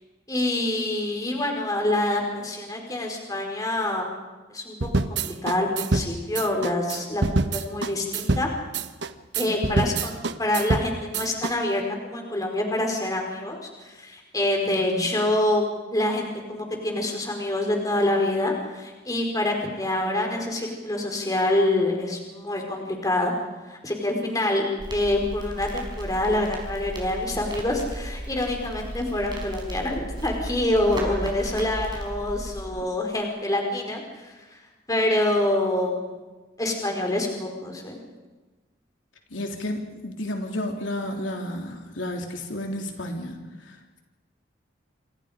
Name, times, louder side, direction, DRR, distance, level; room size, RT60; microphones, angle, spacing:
voice 1, 0.3-4.1 4.5-4.7 5.1-7.2 7.5-8.5 9.3-23.3 23.7-34.3 34.9-36.1 36.6-38.0, left 1 dB, 20° left, 1 dB, 4.6 m, -26 dB
sound 1, 4.8-11.5, right 3 dB, 65° right, 1.1 m, -26 dB
voice 2, 9.4-10.0 14.6-15.1 32.8-32.9 39.3-44.0, left 1 dB, 85° left, 2 dB, 3.4 m, -32 dB
Crackle, 24.8-32.6, right 1 dB, 25° right, 4.9 m, -35 dB
27.0 x 27.0 x 5.2 m, 1.2 s
head